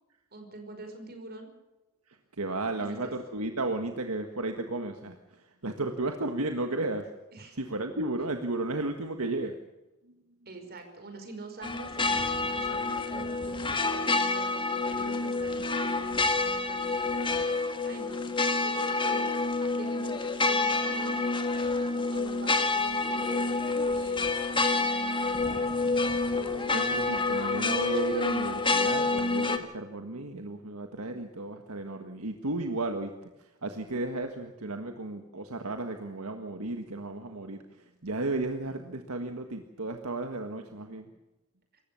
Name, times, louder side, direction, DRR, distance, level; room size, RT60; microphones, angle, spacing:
voice 1, 0.3-1.5 2.8-3.1 7.3-7.6 10.5-19.3 19.6-24.4 24.7-27.3, right 3 dB, 45° right, 6 dB, 5.2 m, -46 dB
voice 2, 2.1-7.1 7.5-9.5 26.7-41.1, right 2 dB, 75° right, 5 dB, 1.6 m, -34 dB
sound 1, 11.6-29.6, left 3 dB, 25° left, 1.7 m, -28 dB
26.5 x 15.0 x 7.0 m, 1.0 s
head